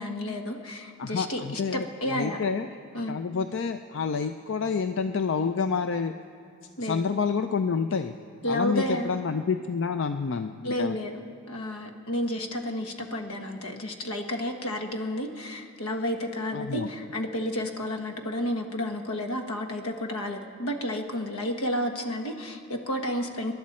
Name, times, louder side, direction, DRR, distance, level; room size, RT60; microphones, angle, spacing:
voice 1, 0.0-2.4 2.9-3.2 6.8-7.0 8.4-9.1 10.6-11.2 11.5-23.5, left 1 dB, 80° left, 4 dB, 1.3 m, -31 dB
voice 2, 1.0-2.7 3.1-6.1 6.8-8.1 8.5-11.0 16.5-16.9, left 5 dB, 55° left, 8 dB, 0.4 m, -28 dB
26.5 x 11.5 x 4.3 m, 2.3 s
head